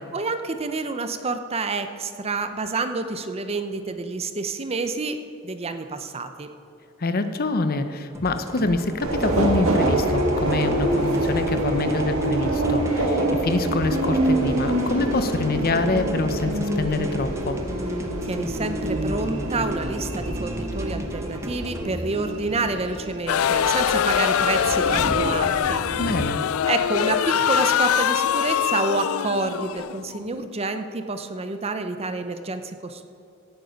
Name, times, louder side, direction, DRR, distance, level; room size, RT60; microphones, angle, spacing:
voice 1, 0.1-5.2 5.4-6.5 18.2-25.8 26.7-33.1, right 3 dB, 30° right, 9 dB, 0.7 m, -28 dB
voice 2, 7.0-17.6 26.0-26.4, left 3 dB, 45° left, 10 dB, 0.7 m, -25 dB
sound 1, 8.1-21.9, equal, 15° right, 1.1 m, -38 dB
Subway metro underground, 9.0-26.2, right 1 dB, 85° right, 1.8 m, -26 dB
sound 2, 23.3-30.4, left 9 dB, 90° left, 0.4 m, -23 dB
17.0 x 9.2 x 5.2 m, 2.7 s
head